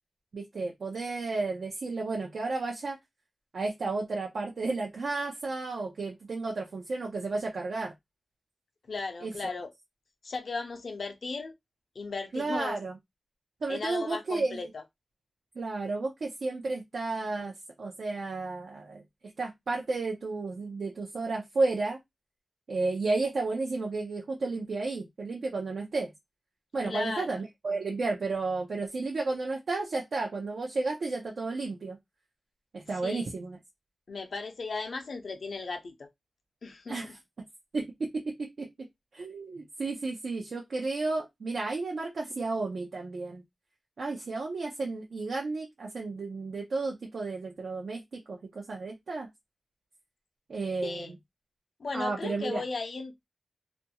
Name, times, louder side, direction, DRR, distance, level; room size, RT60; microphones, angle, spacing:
voice 1, 0.3-3.0 3.5-7.9 9.2-9.5 12.3-12.9 13.6-14.6 15.6-17.5 17.8-19.0 19.4-22.0 22.7-26.1 26.7-32.0 32.7-33.6 36.9-37.2 37.7-38.9 39.1-43.4 44.0-49.3 50.5-51.2 51.9-52.6, right 3 dB, 75° right, 0.5 m, -32 dB
voice 2, 8.9-9.7 10.2-11.5 12.0-12.8 13.7-14.8 26.8-27.4 33.0-33.3 34.1-36.1 36.6-37.1 50.8-51.1 51.8-53.2, left 4 dB, 70° left, 0.6 m, -36 dB
2.5 x 2.2 x 2.8 m
wide cardioid pair, 90°, 0 cm